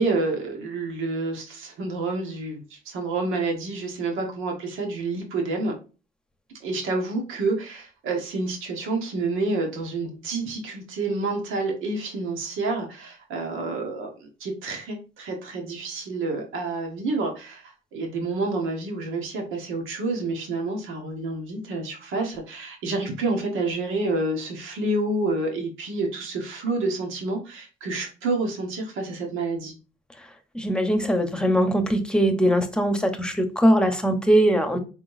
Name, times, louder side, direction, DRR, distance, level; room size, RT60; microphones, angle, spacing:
voice 1, 0.0-5.7 6.6-29.7, right 3 dB, 90° right, 1.4 m, -28 dB
voice 2, 30.5-34.8, equal, 5° left, 1.0 m, -21 dB
5.3 x 3.7 x 2.7 m
cardioid pair, 90°, 20 cm